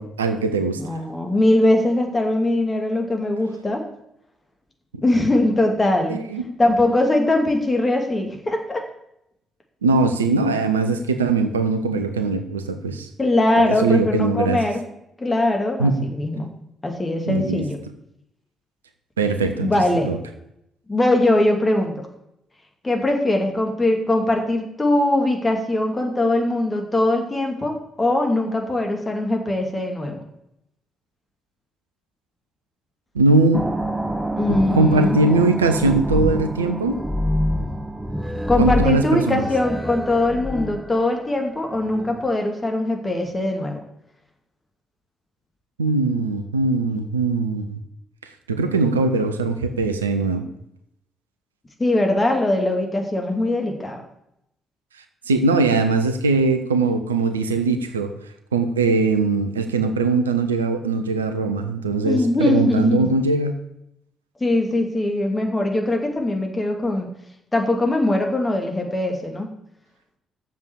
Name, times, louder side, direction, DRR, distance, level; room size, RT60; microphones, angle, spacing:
voice 1, 0.0-0.8 4.9-5.0 6.1-6.5 9.8-13.1 13.6-14.6 15.8-16.1 17.3-17.6 19.2-19.7 20.0-20.2 33.1-33.7 34.5-37.0 38.6-39.5 45.8-47.8 48.5-50.4 55.3-58.1 58.5-63.5, right 3 dB, 85° right, 8 dB, 0.7 m, -21 dB
voice 2, 0.8-3.8 5.0-6.2 6.6-8.8 13.2-14.8 15.2-16.5 16.8-17.8 19.6-20.1 20.9-21.9 22.8-30.2 34.4-35.2 38.5-43.8 51.8-54.0 62.0-63.1 64.4-67.1 67.5-69.5, left 1 dB, 25° left, 3 dB, 2.5 m, -21 dB
sound 1, 33.5-42.3, equal, 10° right, 1.3 m, -27 dB
7.5 x 7.2 x 8.2 m, 0.78 s
figure-of-eight pair, 45°, 0 cm